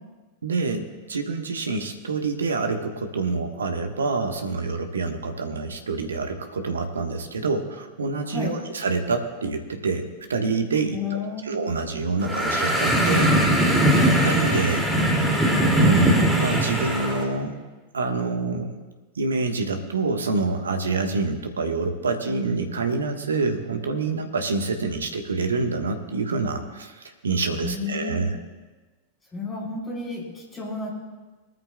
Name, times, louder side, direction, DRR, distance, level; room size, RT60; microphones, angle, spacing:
voice 1, 0.4-11.2 11.4-13.9 14.2-14.9 15.8-17.6 17.9-18.7 19.1-28.3, right 3 dB, 70° right, 5 dB, 1.3 m, -27 dB
voice 2, 8.3-8.6 10.9-11.6 27.6-28.3 29.3-30.9, left 3 dB, 15° left, -3 dB, 4.6 m, -32 dB
sound 1, 12.2-17.2, right 1 dB, 5° right, 2.5 m, -20 dB
21.0 x 13.5 x 2.3 m, 1.3 s
figure-of-eight pair, 90°, 0 cm